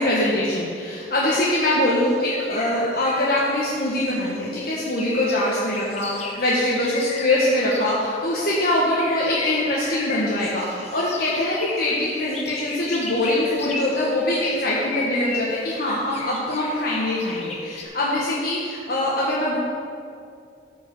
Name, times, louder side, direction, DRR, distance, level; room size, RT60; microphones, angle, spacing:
voice 1, 0.0-19.6, left 1 dB, 55° left, -5 dB, 1.3 m, -23 dB
sound 1, 1.4-17.8, left 3 dB, 35° left, 1.1 m, -35 dB
13.0 x 4.9 x 6.9 m, 2.4 s
head